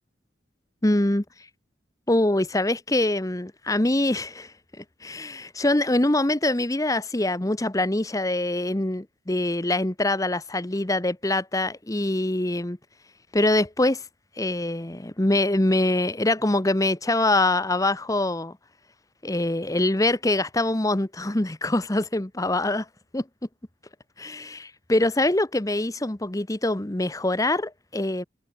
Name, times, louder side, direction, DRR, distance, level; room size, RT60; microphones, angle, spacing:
voice 1, 0.8-1.2 2.1-12.8 13.3-14.0 14.4-18.6 19.2-22.9 23.1-23.2 24.2-28.2, left 2 dB, 15° left, 0.9 m, -24 dB
head